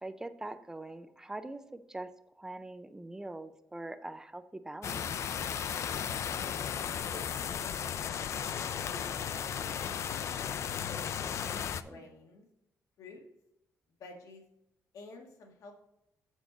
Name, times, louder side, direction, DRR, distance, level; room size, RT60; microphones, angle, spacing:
voice 1, 0.0-2.1 2.4-5.1 11.4-12.0, right 2 dB, 10° right, 10 dB, 0.4 m, -43 dB
sound 1, 4.8-11.8, left 8 dB, 55° left, 0.4 m, -35 dB
voice 2, 6.2-10.0 10.9-11.5 11.8-12.4 13.0-13.2 14.0-14.4 14.9-15.7, left 2 dB, 70° left, 2 dB, 1.7 m, -51 dB
7.4 x 7.2 x 3.8 m, 0.83 s
cardioid pair, 150°, 6 cm